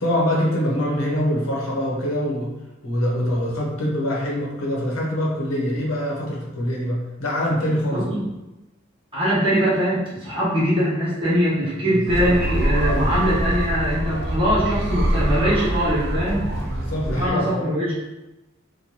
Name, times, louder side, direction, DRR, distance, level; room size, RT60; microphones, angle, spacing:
voice 1, 0.0-2.5 2.8-8.1 11.9-12.4 12.8-13.1 16.6-17.7, equal, 85° left, -3 dB, 1.0 m, -24 dB
voice 2, 7.9-8.3 9.1-16.5 17.1-17.9, equal, 25° right, -9 dB, 1.3 m, -22 dB
sound 1, 12.1-17.3, right 1 dB, 55° right, 0.5 m, -24 dB
4.0 x 2.5 x 3.0 m, 1.0 s
head